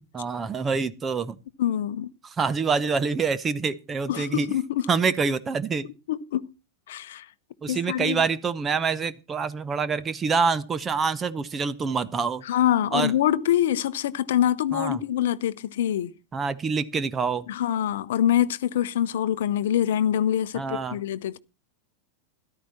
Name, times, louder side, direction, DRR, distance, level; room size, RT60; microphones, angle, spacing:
voice 1, 0.1-1.4 2.2-4.5 4.9-5.9 7.6-12.4 12.9-13.1 14.7-15.0 16.3-17.5 20.5-21.0, right 5 dB, 20° right, 0.8 m, -26 dB
voice 2, 1.6-2.1 4.1-4.8 6.1-6.5 6.9-7.3 7.7-8.2 12.5-16.1 17.5-21.4, left 11 dB, 55° left, 0.7 m, -25 dB
13.5 x 12.0 x 4.3 m
figure-of-eight pair, 90°, 0 cm